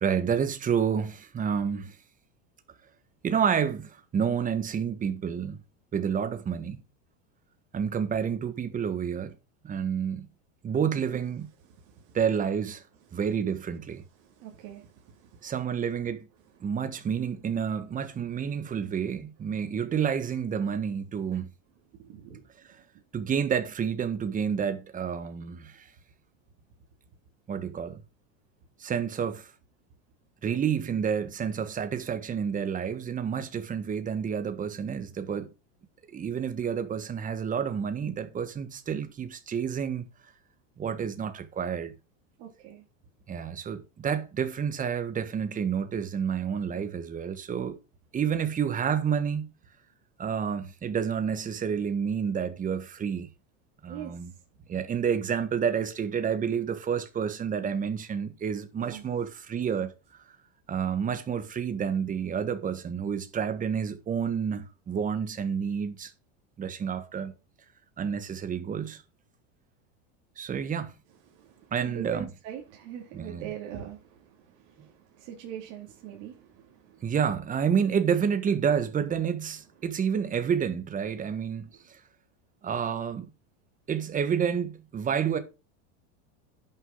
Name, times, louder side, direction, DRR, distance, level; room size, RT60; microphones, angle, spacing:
voice 1, 0.0-2.0 3.2-5.6 5.9-6.8 7.7-9.3 9.6-10.3 10.6-11.5 12.1-12.8 13.1-14.0 15.4-16.3 16.6-21.5 22.6-22.8 23.1-25.9 27.5-28.0 28.8-29.5 30.4-35.5 36.1-40.1 40.8-41.9 43.3-47.8 48.1-49.5 50.2-53.3 53.8-54.3 54.7-59.9 60.7-66.1 66.6-67.3 68.0-69.0 70.4-70.9 71.7-72.3 73.1-73.5 77.0-82.0 82.6-83.3 83.9-85.4, right 7 dB, 20° right, 1.4 m, -29 dB
voice 2, 11.7-12.2 14.2-15.5 22.0-22.5 42.4-42.8 53.9-54.1 58.8-59.0 71.3-77.1, right 9 dB, 50° right, 2.6 m, -43 dB
11.0 x 6.5 x 3.9 m
supercardioid pair, 140°, 38 cm